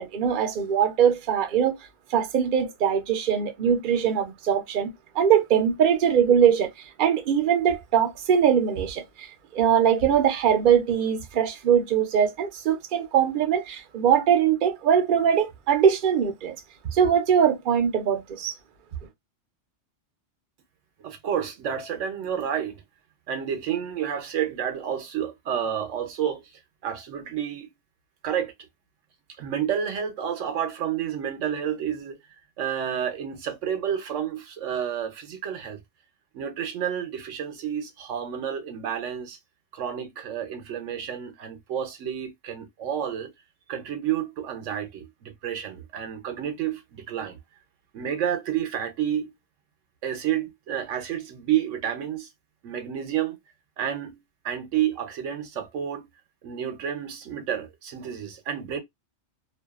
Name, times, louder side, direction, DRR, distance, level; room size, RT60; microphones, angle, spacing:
voice 1, 0.0-1.8 2.1-16.6 16.9-18.5, right 8 dB, 55° right, 0.6 m, -22 dB
voice 2, 21.0-22.8 23.3-26.4 26.8-27.7 28.2-28.5 29.4-32.2 32.6-35.8 36.3-39.4 39.7-43.3 43.7-47.4 47.9-49.3 50.0-52.3 52.6-53.4 53.8-54.2 54.4-56.1 56.4-58.8, right 9 dB, 80° right, 1.0 m, -30 dB
2.6 x 2.3 x 2.3 m
omnidirectional pair, 1.3 m